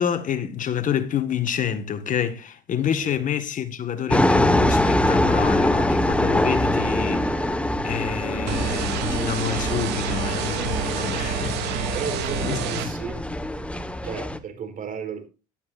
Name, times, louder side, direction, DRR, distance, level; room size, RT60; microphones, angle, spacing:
voice 1, 0.0-12.0 12.4-12.6, left 8 dB, 50° left, 1.7 m, -28 dB
voice 2, 2.8-3.2 11.9-13.2 14.0-15.3, right 6 dB, 55° right, 4.1 m, -34 dB
sound 1, 4.1-14.4, left 1 dB, 5° left, 1.4 m, -24 dB
sound 2, 8.5-12.9, right 5 dB, 80° right, 3.0 m, -28 dB
16.5 x 12.5 x 2.6 m
cardioid pair, 110°, 17 cm